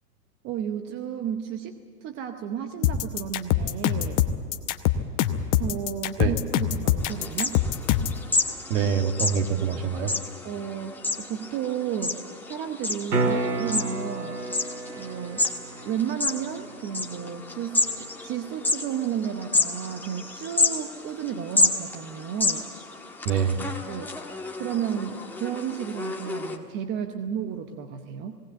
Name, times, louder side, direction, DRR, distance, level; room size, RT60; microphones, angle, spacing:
voice 1, 0.4-4.2 5.6-7.6 10.4-12.2 12.5-14.4 15.0-15.4 15.9-22.6 23.9-24.2 24.6-28.4, right 9 dB, 20° right, 8 dB, 0.8 m, -32 dB
sound 1, 2.8-8.2, left 10 dB, 30° left, 0.9 m, -24 dB
sound 2, 7.0-26.6, left 3 dB, 5° left, 1.4 m, -30 dB
voice 2, 8.7-10.1 23.3-23.7, right 7 dB, 45° right, 5 dB, 2.0 m, -25 dB
sound 3, 13.1-19.1 23.8-23.9, right 2 dB, 70° right, 2.7 m, -32 dB
18.5 x 18.0 x 8.0 m, 2.1 s
hypercardioid pair, 115°, 49 cm